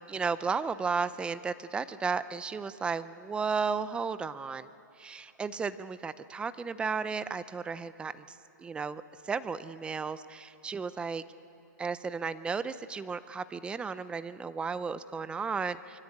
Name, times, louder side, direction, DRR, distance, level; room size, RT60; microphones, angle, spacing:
voice 1, 0.0-4.7 5.0-11.2 11.8-16.0, right 5 dB, 10° right, 15 dB, 0.6 m, -34 dB
25.0 x 23.5 x 8.7 m, 2.8 s
hypercardioid pair, 140°, 11 cm